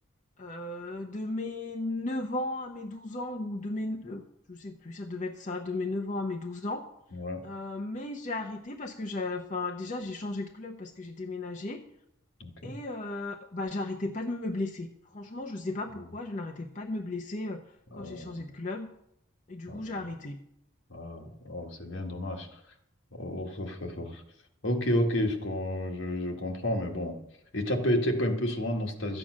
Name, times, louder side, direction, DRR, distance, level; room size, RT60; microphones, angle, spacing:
voice 1, 0.4-4.2 4.5-6.9 7.4-11.8 12.6-17.6 17.9-18.9 19.5-20.4, left 2 dB, 35° left, 3 dB, 0.8 m, -35 dB
voice 2, 7.1-7.4 12.4-12.8 17.9-18.4 19.7-20.0 20.9-22.6 23.1-24.2 24.6-27.2 27.5-29.2, left 1 dB, 70° left, 3 dB, 1.8 m, -31 dB
13.5 x 8.9 x 6.3 m, 0.77 s
head